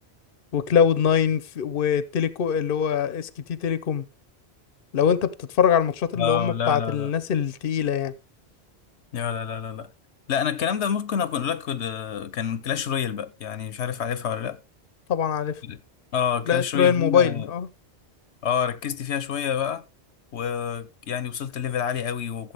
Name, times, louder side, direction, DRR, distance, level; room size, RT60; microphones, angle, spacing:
voice 1, 0.5-4.0 4.9-8.1 15.1-15.5 16.5-17.7, left 8 dB, 55° left, 0.9 m, -23 dB
voice 2, 6.1-7.1 9.1-9.9 10.3-14.6 15.6-15.8 16.1-17.5 18.4-19.8 20.3-22.5, left 8 dB, 85° left, 1.1 m, -28 dB
15.0 x 7.3 x 3.4 m
omnidirectional pair, 1.1 m